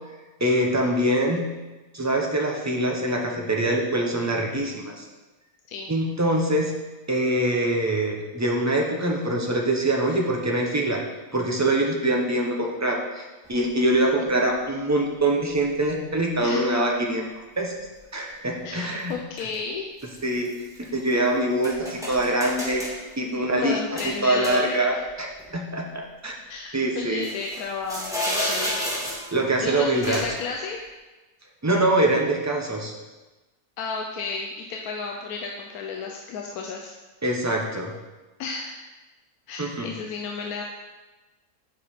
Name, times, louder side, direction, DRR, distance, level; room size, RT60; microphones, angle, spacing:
voice 1, 0.4-1.4 1.9-5.0 5.9-6.7 7.1-11.0 11.3-17.3 17.6-17.7 18.1-19.1 20.2-20.5 20.8-22.8 23.2-23.8 24.0-26.3 26.7-27.3 29.3-30.2 31.6-32.9 37.2-37.9 39.6-39.9, right 1 dB, 20° right, 0 dB, 0.4 m, -24 dB
sound 1, 13.4-13.5 14.5-14.6 15.6-15.8 19.1-19.5 20.0-21.2 21.6-23.0 24.0-25.0 25.4-25.5 27.2-29.4 30.0-30.5, equal, ahead, 1.3 m, -31 dB
voice 2, 16.4-16.7 18.6-19.9 23.6-25.0 26.5-29.2 29.6-30.8 33.8-36.9 38.4-38.8 39.5-40.6, left 5 dB, 75° left, 0 dB, 1.1 m, -33 dB
7.4 x 4.9 x 4.3 m, 1.2 s
omnidirectional pair, 1.6 m